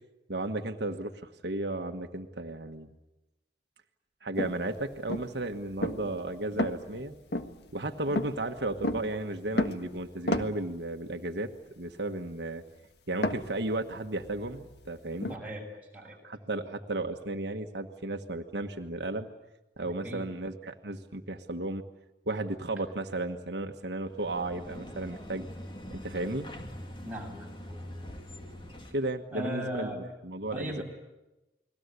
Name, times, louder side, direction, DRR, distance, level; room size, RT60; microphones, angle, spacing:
voice 1, 0.3-1.1 1.4-2.9 4.2-7.1 7.7-11.5 11.8-12.6 13.1-15.4 16.2-19.3 19.8-21.8 22.3-25.5 25.9-26.5 28.9-29.9 30.2-30.8, right 2 dB, 70° right, 5 dB, 1.4 m, -34 dB
sound 1, 4.4-10.9 13.1-15.4, left 1 dB, 70° left, 1.6 m, -34 dB
voice 2, 15.3-15.7 15.9-16.2 20.0-20.3 27.0-27.5 29.3-30.0 30.5-30.8, equal, 10° right, -1 dB, 7.0 m, -37 dB
sound 2, 24.0-29.1, left 1 dB, 30° left, 2.5 m, -44 dB
30.0 x 21.5 x 8.2 m, 1.0 s
head